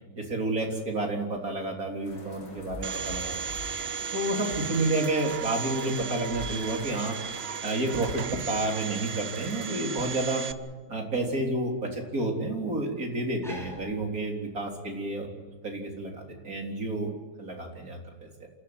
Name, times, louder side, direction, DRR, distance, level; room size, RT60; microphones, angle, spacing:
voice 1, 0.2-3.3 4.1-7.2 7.6-10.4 10.9-15.3 15.6-17.1 17.4-18.3, right 2 dB, 70° right, 2 dB, 4.1 m, -30 dB
sound 1, 2.0-9.7, left 1 dB, 60° left, 5.0 m, -47 dB
Domestic sounds home sounds, 2.8-10.5, right 6 dB, 50° right, 1.0 m, -35 dB
sound 2, 10.8-14.8, equal, ahead, 4.9 m, -52 dB
27.0 x 15.0 x 9.5 m, 1.4 s
omnidirectional pair, 1.6 m